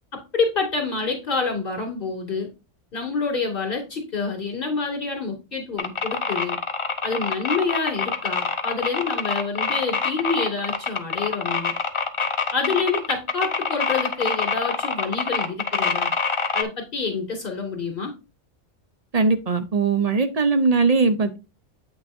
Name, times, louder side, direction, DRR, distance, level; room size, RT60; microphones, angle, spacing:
voice 1, 0.1-2.5 2.9-6.6 7.0-11.7 12.5-16.1 16.5-18.1, left 4 dB, 50° left, 2.5 m, -27 dB
sound 1, 5.8-16.6, left 4 dB, 30° left, 0.6 m, -25 dB
voice 2, 19.1-21.4, right 4 dB, 40° right, 0.7 m, -20 dB
8.3 x 5.9 x 2.6 m
omnidirectional pair, 1.2 m